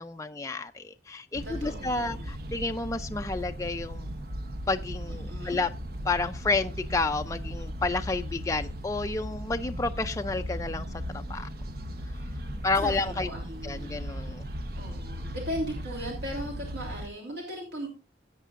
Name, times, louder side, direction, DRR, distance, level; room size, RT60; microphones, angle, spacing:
voice 1, 0.0-4.1 4.7-5.7 6.1-11.5 12.6-13.3 13.6-14.4, left 3 dB, 15° left, 6 dB, 0.4 m, -30 dB
sound 1, 1.3-17.1, equal, 55° right, 0.8 m, -37 dB
voice 2, 1.4-2.3 5.1-5.6 12.7-14.0 14.7-17.9, equal, 75° right, 0 dB, 3.0 m, -38 dB
16.5 x 8.2 x 2.5 m, 0.28 s
head